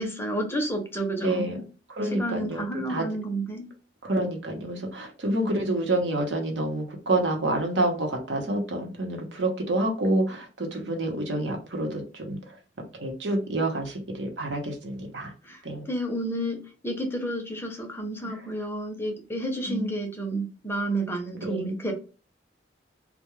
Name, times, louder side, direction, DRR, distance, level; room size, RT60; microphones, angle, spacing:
voice 1, 0.0-1.6 2.2-3.7 15.4-15.6 15.9-16.6 16.8-21.9, right 1 dB, 15° left, 3 dB, 0.5 m, -30 dB
voice 2, 1.2-1.6 1.9-3.1 4.0-12.4 12.9-15.3 15.6-15.9 18.2-18.4 19.7-20.0 21.4-21.8, right 1 dB, 85° right, 2 dB, 0.8 m, -28 dB
2.3 x 2.2 x 3.0 m, 0.35 s
head